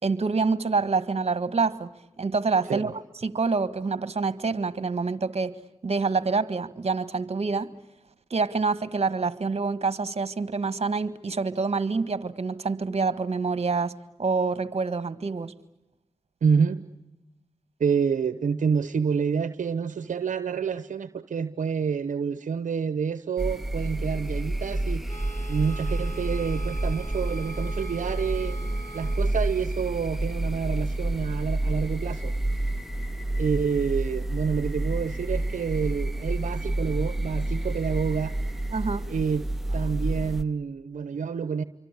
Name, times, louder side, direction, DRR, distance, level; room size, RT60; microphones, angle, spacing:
voice 1, 0.0-1.9 2.2-2.9 3.2-5.5 5.8-7.7 8.3-15.5 38.7-39.0, right 4 dB, 50° right, 14 dB, 1.6 m, -26 dB
voice 2, 16.4-16.8 17.8-25.2 25.5-28.6 28.9-32.3 33.4-38.3 39.1-39.4 39.7-41.6, right 6 dB, 75° right, 12 dB, 1.0 m, -28 dB
sound 1, 23.4-40.4, right 1 dB, ahead, 1.7 m, -29 dB
sound 2, 25.1-29.3, right 3 dB, 20° left, 3.8 m, -43 dB
28.0 x 24.5 x 8.3 m, 0.96 s
cardioid pair, 40°, 13 cm